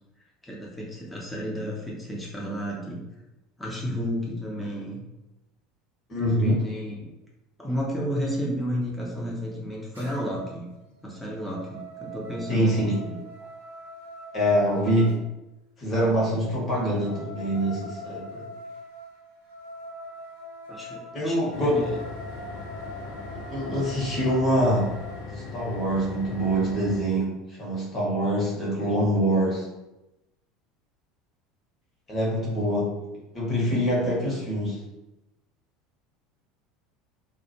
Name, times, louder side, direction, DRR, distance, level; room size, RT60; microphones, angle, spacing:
voice 1, 0.4-3.0 3.6-5.0 6.2-7.1 7.6-10.7 11.0-13.2 20.7-22.0 23.6-23.8, equal, 5° left, -4 dB, 0.6 m, -32 dB
voice 2, 6.1-6.6 12.5-13.0 14.3-15.2 15.8-18.4 21.1-21.8 23.3-24.9 25.3-29.7 32.1-32.9 33.3-34.8, equal, 30° left, -5 dB, 1.0 m, -25 dB
sound 1, 9.9-10.6 11.0-15.2 16.6-25.2, equal, 85° right, 0.6 m, -42 dB
sound 2, 21.5-27.0, left 3 dB, 60° left, 0.4 m, -39 dB
2.2 x 2.0 x 3.0 m, 0.98 s
figure-of-eight pair, 70°, 0 cm